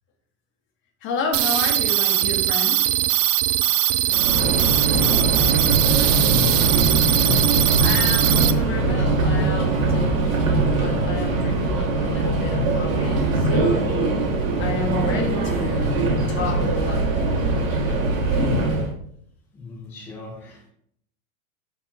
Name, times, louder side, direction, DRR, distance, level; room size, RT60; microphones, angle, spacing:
voice 1, 1.0-2.9 7.8-14.0 14.6-17.5 17.9-18.0 18.3-18.7, left 3 dB, 30° left, 2 dB, 1.2 m, -31 dB
sound 1, 1.3-8.5, right 14 dB, 70° right, 0.5 m, -21 dB
voice 2, 3.9-4.2 4.9-6.7 19.5-20.7, left 3 dB, 5° left, -4 dB, 0.4 m, -36 dB
Subway metro underground, 4.1-18.9, right 2 dB, 85° right, 2.0 m, -21 dB
5.5 x 4.6 x 4.2 m, 0.67 s
supercardioid pair, 155°, 40 cm